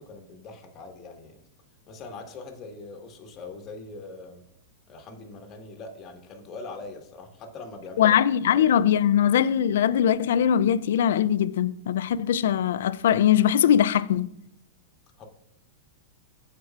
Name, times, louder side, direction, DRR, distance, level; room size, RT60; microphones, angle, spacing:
voice 1, 0.0-1.4 1.9-4.4 4.9-8.2 8.5-8.8 15.2-15.3, left 3 dB, 35° left, 1.5 m, -42 dB
voice 2, 8.0-14.3, left 9 dB, 75° left, 0.3 m, -21 dB
13.5 x 4.7 x 2.4 m
hypercardioid pair, 120°, 0 cm